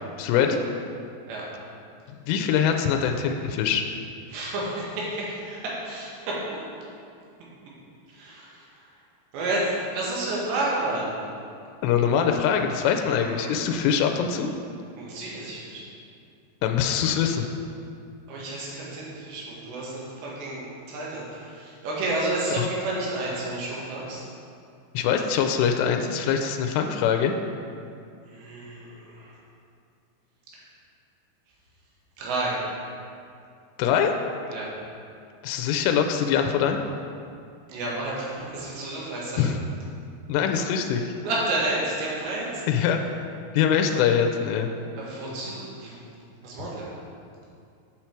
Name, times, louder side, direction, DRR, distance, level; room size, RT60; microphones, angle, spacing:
voice 1, 0.2-0.6 2.1-3.8 11.8-14.5 16.6-17.5 22.6-22.7 24.9-27.3 33.8-34.1 35.4-36.8 39.4-39.6 40.3-41.1 42.7-43.0 43.5-44.7, left 8 dB, 85° left, 4 dB, 2.7 m, -23 dB
voice 2, 4.3-6.6 8.1-8.9 9.3-11.2 13.0-13.5 14.9-15.8 18.3-24.2 28.2-29.4 32.2-32.6 34.5-34.7 37.7-39.4 41.2-42.7 45.0-46.0 46.4-47.0, right 2 dB, 85° right, -5 dB, 3.8 m, -31 dB
8.1 x 5.9 x 4.4 m, 2.4 s
omnidirectional pair, 4.9 m